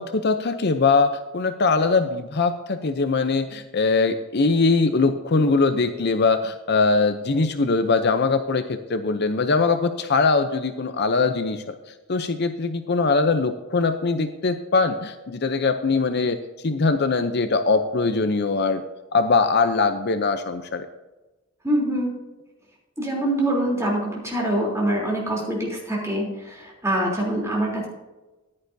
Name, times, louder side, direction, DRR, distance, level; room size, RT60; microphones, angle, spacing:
voice 1, 0.0-11.7 12.1-16.4 16.6-18.8 19.1-20.9, left 4 dB, 50° left, 9 dB, 0.6 m, -21 dB
voice 2, 21.6-22.2 23.0-27.9, right 1 dB, 15° right, -3 dB, 3.4 m, -24 dB
14.5 x 10.5 x 2.7 m, 1.1 s
head